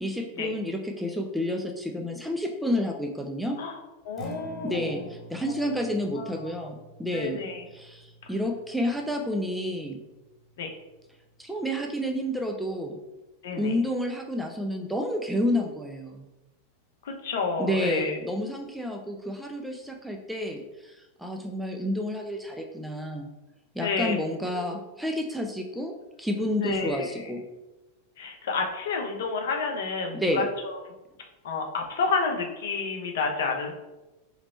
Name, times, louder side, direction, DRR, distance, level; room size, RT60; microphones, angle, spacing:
voice 1, 0.0-3.6 4.6-7.4 7.7-10.0 11.4-13.0 13.6-16.3 17.6-23.3 23.7-27.4 30.1-30.5, equal, ahead, 3 dB, 0.4 m, -30 dB
voice 2, 4.0-5.1 5.5-5.8 6.2-6.7 7.1-7.6 10.6-10.7 13.4-13.7 17.0-18.2 23.8-24.2 26.6-27.3 28.2-30.8 31.4-33.7, left 4 dB, 55° left, 2 dB, 0.6 m, -30 dB
Acoustic guitar, 4.0-12.2, equal, 15° left, 1.1 m, -49 dB
3.2 x 3.0 x 4.1 m, 1.0 s
figure-of-eight pair, 90°, 0 cm